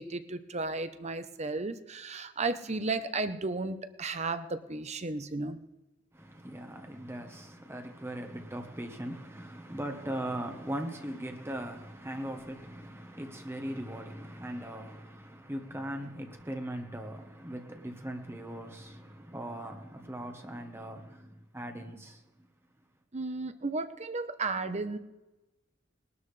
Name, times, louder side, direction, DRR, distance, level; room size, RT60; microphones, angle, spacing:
voice 1, 0.0-5.6 23.1-25.0, right 3 dB, 35° right, 0.9 m, -34 dB
voice 2, 6.1-22.2, right 1 dB, 15° right, 1.2 m, -39 dB
20.5 x 12.5 x 3.3 m
head